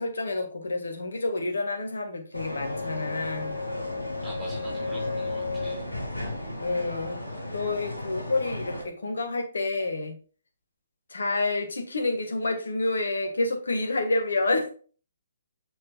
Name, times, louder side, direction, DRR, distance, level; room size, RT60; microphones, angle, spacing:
voice 1, 0.0-3.6 6.6-7.2 7.5-10.2 11.1-14.7, left 2 dB, 70° left, 5 dB, 1.8 m, -28 dB
sound 1, 2.3-8.8, left 2 dB, 85° left, 2.5 m, -33 dB
voice 2, 4.2-5.9, right 1 dB, 15° right, -6 dB, 3.7 m, -42 dB
7.3 x 6.0 x 2.4 m, 0.39 s
figure-of-eight pair, 130°, 0 cm